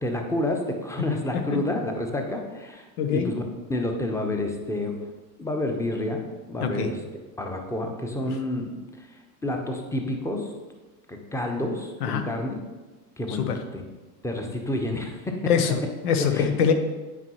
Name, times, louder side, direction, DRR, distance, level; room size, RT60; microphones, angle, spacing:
voice 1, 0.0-2.9 3.1-3.4 3.7-5.0 5.4-6.2 6.5-7.0 7.4-9.1 9.4-10.5 11.1-12.6 13.2-13.8 14.2-15.4 16.3-16.5, left 1 dB, 5° left, 3 dB, 0.9 m, -29 dB
voice 2, 3.0-3.3 6.6-6.9 12.0-12.2 13.3-13.6 15.5-16.7, left 7 dB, 70° left, 7 dB, 1.0 m, -24 dB
9.3 x 4.6 x 3.0 m, 1.2 s
hypercardioid pair, 90°, 48 cm